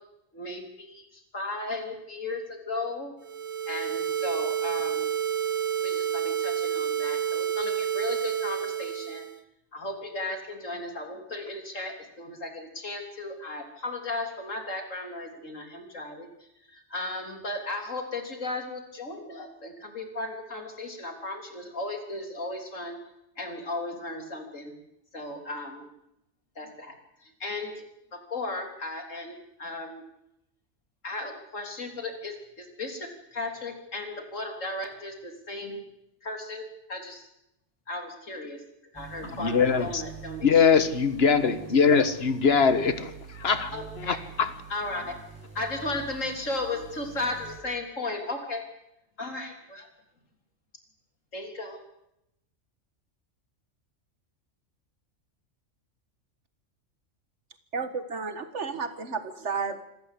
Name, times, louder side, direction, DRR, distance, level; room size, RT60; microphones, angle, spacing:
voice 1, 0.3-3.1 3.7-5.1 5.8-9.3 9.7-23.0 23.4-24.7 25.1-25.9 26.6-27.0 27.2-27.8 28.1-30.0 31.0-35.8 36.2-37.3 37.9-38.6 38.9-40.6 41.9-42.0 43.7-44.2 44.7-45.1 45.5-48.6 49.2-49.9 51.3-51.8, left 2 dB, 85° left, 3.8 m, -35 dB
sound 1, 3.2-9.4, right 9 dB, 80° right, 1.5 m, -29 dB
sound 2, 38.9-47.6, right 7 dB, 10° right, 6.1 m, -45 dB
voice 2, 39.3-40.0 40.4-44.5, left 5 dB, 55° left, 1.6 m, -22 dB
voice 3, 57.7-59.8, right 5 dB, 65° right, 1.9 m, -32 dB
26.5 x 14.0 x 8.3 m
omnidirectional pair, 1.3 m